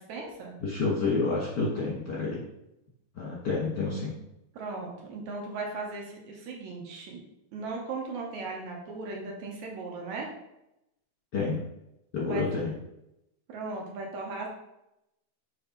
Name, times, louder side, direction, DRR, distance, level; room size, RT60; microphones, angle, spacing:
voice 1, 0.0-0.5 4.5-7.2 7.5-10.3 12.3-12.5 13.5-14.5, right 3 dB, 70° right, 0 dB, 2.4 m, -37 dB
voice 2, 0.6-2.4 3.1-4.1 11.3-11.6 12.1-12.7, left 3 dB, 50° left, -6 dB, 1.4 m, -29 dB
6.5 x 4.5 x 3.9 m, 0.87 s
omnidirectional pair, 3.6 m